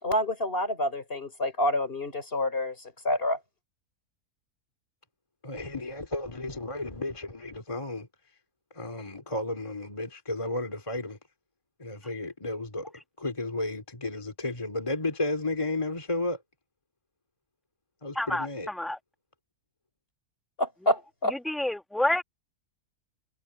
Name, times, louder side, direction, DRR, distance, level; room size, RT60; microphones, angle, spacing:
voice 1, 0.0-2.8 3.0-3.4 20.6-21.4, left 1 dB, 35° left, 4.2 m, -28 dB
voice 2, 5.4-8.1 8.7-11.2 11.8-12.9 13.2-16.4 18.0-18.7, left 2 dB, 20° left, 2.5 m, -33 dB
voice 3, 18.1-18.5 18.8-19.0 21.4-22.2, left 1 dB, ahead, 1.4 m, -27 dB
omnidirectional pair, 1.6 m